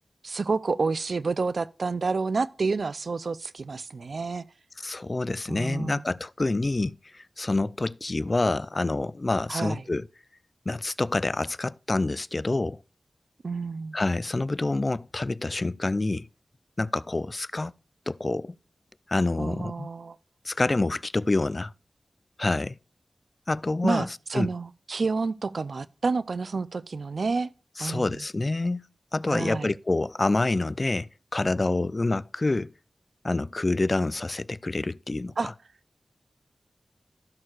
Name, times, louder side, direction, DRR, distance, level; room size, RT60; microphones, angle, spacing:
voice 1, 0.2-4.4 5.5-6.0 9.5-9.8 13.4-14.0 19.4-20.2 23.8-27.5 27.8-28.2 29.3-29.7 35.4-35.5, right 4 dB, 75° right, 0.4 m, -29 dB
voice 2, 4.8-10.1 10.7-12.8 13.9-16.3 16.8-17.7 18.1-18.6 19.1-19.9 20.5-21.7 22.4-22.8 23.5-24.5 27.8-28.8 29.1-32.7 33.2-35.5, left 2 dB, 45° left, 0.3 m, -27 dB
15.5 x 6.4 x 2.4 m
cardioid pair, 45°, 0 cm